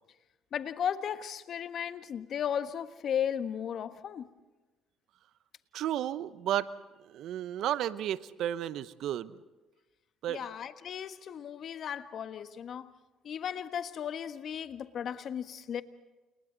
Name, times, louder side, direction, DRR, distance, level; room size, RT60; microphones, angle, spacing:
voice 1, 0.5-4.3 10.3-12.9 13.2-15.8, left 8 dB, 55° left, 1.5 m, -35 dB
voice 2, 5.7-6.7 7.0-9.3 10.2-10.5, right 11 dB, 65° right, 1.0 m, -33 dB
30.0 x 30.0 x 4.1 m
hypercardioid pair, 60°, 0 cm